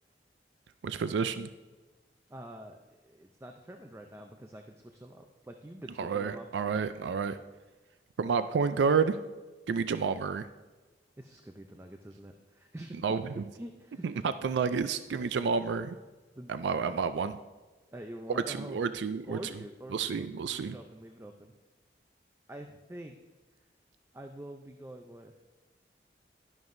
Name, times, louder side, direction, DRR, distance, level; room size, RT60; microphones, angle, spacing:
voice 1, 0.8-1.5 6.0-7.4 8.2-9.2 9.7-10.4 13.0-13.4 14.0-16.0 16.5-17.4 18.3-19.4 19.9-20.7, right 5 dB, 85° right, 12 dB, 0.4 m, -30 dB
voice 2, 2.3-6.5 11.2-13.0 13.6-14.1 16.4-17.1 17.9-18.8 19.2-21.5 22.5-23.2 24.1-25.3, right 1 dB, 15° right, 4 dB, 0.4 m, -46 dB
11.5 x 10.5 x 2.6 m, 1.2 s
head